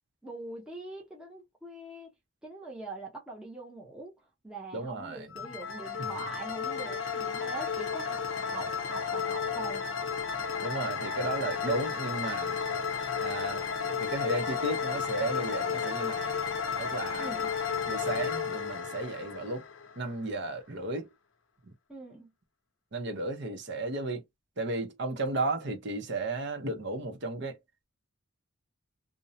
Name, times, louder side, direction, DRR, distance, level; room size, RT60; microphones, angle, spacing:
voice 1, 0.2-2.1 2.4-4.2 4.4-9.9 17.2-17.5 21.9-22.3, right 2 dB, 5° right, 0.7 m, -43 dB
voice 2, 4.7-5.3 10.6-12.6 13.2-13.7 14.0-16.3 16.8-17.3 17.9-19.6 20.0-21.1 22.9-24.2 24.6-27.6, right 2 dB, 55° right, 0.7 m, -34 dB
sound 1, 5.3-20.1, left 6 dB, 70° left, 0.6 m, -33 dB
2.6 x 2.1 x 2.6 m
head